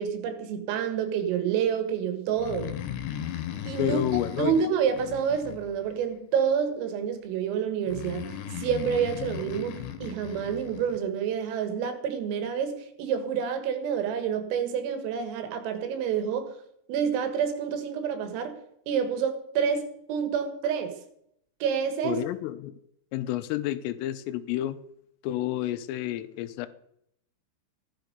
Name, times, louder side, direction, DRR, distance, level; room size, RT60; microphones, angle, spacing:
voice 1, 0.0-2.7 3.7-4.0 4.4-16.5 16.9-18.6 18.9-21.0 21.6-22.2, right 7 dB, 90° right, 4.3 m, -28 dB
Breathing, 2.3-6.0 7.9-11.0, left 10 dB, 70° left, 3.3 m, -37 dB
voice 2, 3.8-4.6 22.0-22.7 23.1-24.8 25.2-26.7, left 12 dB, 85° left, 3.4 m, -30 dB
15.5 x 11.5 x 5.3 m
omnidirectional pair, 5.8 m